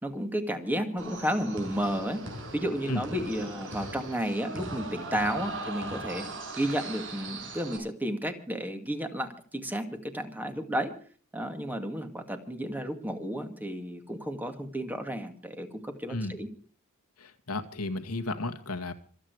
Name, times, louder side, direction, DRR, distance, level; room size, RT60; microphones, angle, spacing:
voice 1, 0.0-2.2 2.5-6.2 6.6-10.9 11.3-16.5, equal, 10° right, 6 dB, 2.2 m, -32 dB
sound 1, 1.0-7.8, right 2 dB, 60° right, 6.0 m, -39 dB
voice 2, 17.2-18.9, left 2 dB, 85° left, 6 dB, 2.0 m, -33 dB
26.5 x 9.0 x 4.8 m, 0.43 s
head